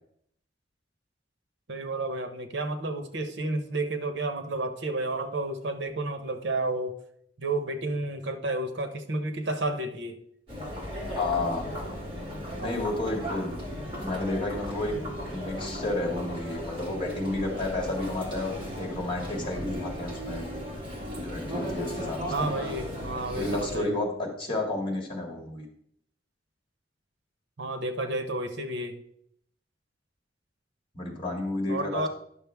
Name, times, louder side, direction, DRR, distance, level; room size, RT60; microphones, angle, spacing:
voice 1, 1.7-7.0 7.4-10.2 22.3-23.9 27.6-29.0 31.7-32.1, right 2 dB, 80° right, 8 dB, 0.9 m, -31 dB
Chatter, 10.5-23.8, equal, 30° right, 2.6 m, -36 dB
voice 2, 11.1-11.8 12.6-13.5 14.0-20.5 21.1-22.5 23.3-25.6 30.9-32.1, left 2 dB, 30° left, 0 dB, 2.1 m, -31 dB
10.5 x 6.4 x 3.5 m, 0.70 s
head